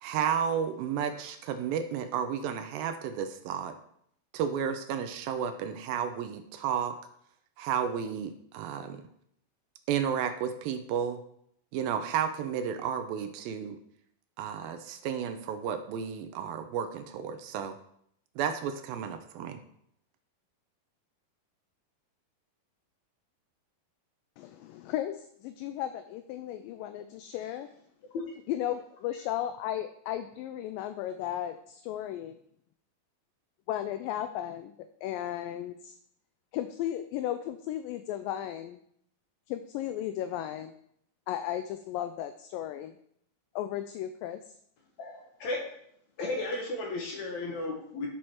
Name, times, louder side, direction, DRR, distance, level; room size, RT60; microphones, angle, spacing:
voice 1, 0.0-3.7 4.3-6.9 7.6-9.0 9.9-11.2 11.7-13.8 14.4-17.7 18.4-19.6, right 8 dB, 85° right, 8 dB, 2.4 m, -32 dB
voice 2, 24.4-27.7 28.5-32.4 33.7-34.7 35.0-36.0 36.5-38.8 39.5-40.7 41.3-43.0 43.6-44.4, left 11 dB, 80° left, 9 dB, 2.1 m, -35 dB
voice 3, 45.0-45.6 46.2-48.1, left 2 dB, 60° left, 0 dB, 2.3 m, -34 dB
10.0 x 6.3 x 4.5 m, 0.69 s
omnidirectional pair, 4.2 m